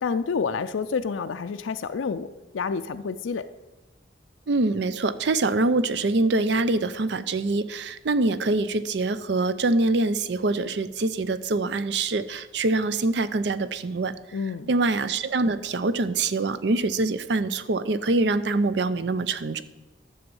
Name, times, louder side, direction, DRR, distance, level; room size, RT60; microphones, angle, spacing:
voice 1, 0.0-2.3 2.5-3.5 14.3-14.7, left 5 dB, 85° left, 9 dB, 0.4 m, -28 dB
voice 2, 4.5-14.1 14.7-19.6, right 2 dB, 60° right, 14 dB, 0.5 m, -24 dB
11.0 x 7.1 x 5.4 m, 1.1 s
head